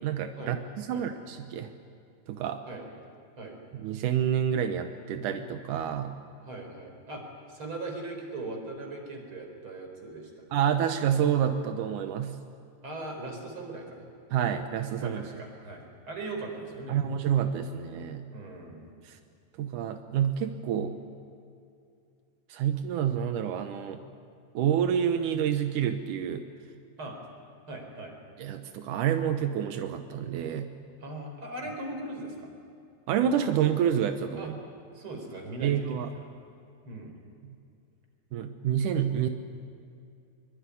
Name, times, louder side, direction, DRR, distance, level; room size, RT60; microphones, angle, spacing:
voice 1, 0.0-1.7 2.3-2.6 3.7-6.2 10.5-12.4 14.3-15.2 16.9-18.3 19.0-19.2 19.6-21.0 22.5-24.0 24.5-26.4 28.4-30.7 33.1-34.6 35.6-36.1 37.4-37.6 38.3-39.3, right 9 dB, 75° right, 7 dB, 1.8 m, -28 dB
voice 2, 6.4-7.2 7.5-10.4 12.8-14.1 15.0-17.0 18.3-18.9 27.0-27.2 27.7-28.1 31.0-32.5 34.3-34.5 34.9-36.0 36.8-37.1, right 2 dB, 30° right, 3 dB, 4.9 m, -39 dB
24.0 x 23.0 x 9.8 m, 2.5 s
omnidirectional pair, 4.9 m